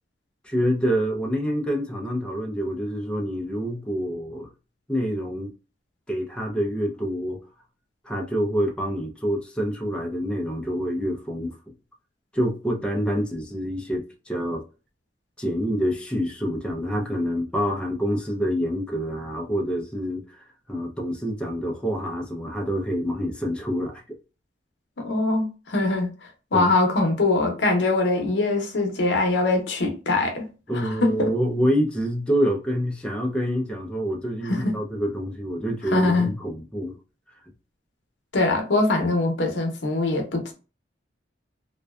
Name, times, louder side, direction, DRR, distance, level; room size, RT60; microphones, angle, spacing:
voice 1, 0.4-4.5 4.9-5.5 6.1-7.4 8.0-11.6 12.3-14.6 15.4-20.4 20.7-24.2 26.5-26.7 30.7-37.0, equal, 5° left, 0.4 m, -27 dB
voice 2, 25.0-30.5 30.7-31.3 34.4-34.7 35.9-36.3 38.3-40.5, left 2 dB, 75° left, 0.7 m, -23 dB
2.5 x 2.2 x 2.2 m
head